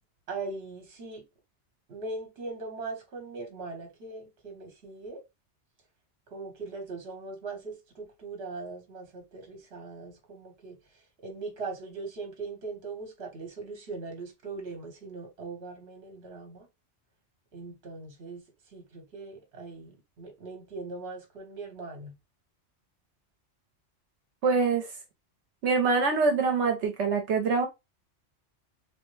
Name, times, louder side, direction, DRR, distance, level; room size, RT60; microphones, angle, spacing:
voice 1, 0.3-1.2 1.9-5.2 6.3-10.8 11.2-16.7 17.5-18.4 18.7-22.2, right 3 dB, 65° right, 1.2 m, -40 dB
voice 2, 24.4-24.9 25.6-27.7, right 4 dB, 80° right, 1.0 m, -24 dB
3.3 x 2.1 x 3.1 m
omnidirectional pair, 1.2 m